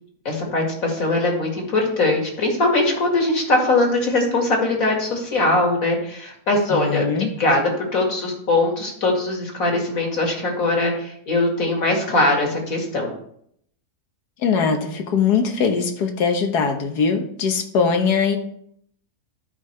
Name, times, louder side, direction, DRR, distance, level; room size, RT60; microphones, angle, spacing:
voice 1, 0.3-7.0 7.4-13.1, left 2 dB, 60° left, 0 dB, 2.4 m, -21 dB
voice 2, 6.7-7.3 14.4-18.4, left 5 dB, 85° left, 5 dB, 1.6 m, -21 dB
12.5 x 5.4 x 3.3 m, 0.68 s
omnidirectional pair, 1.6 m